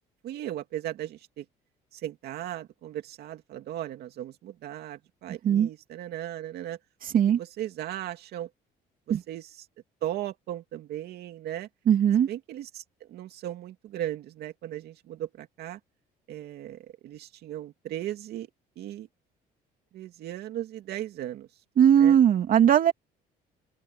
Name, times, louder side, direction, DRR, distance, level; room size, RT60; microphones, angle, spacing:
voice 1, 0.2-1.4 1.9-6.8 7.4-8.5 9.1-9.7 10.0-11.7 12.3-15.8 16.3-18.5 18.8-19.1 19.9-21.5 22.0-22.2, right 12 dB, 75° right, 2.6 m, -37 dB
voice 2, 11.9-12.3 21.8-22.9, right 9 dB, 55° right, 2.6 m, -19 dB
cardioid pair, 110°, 17 cm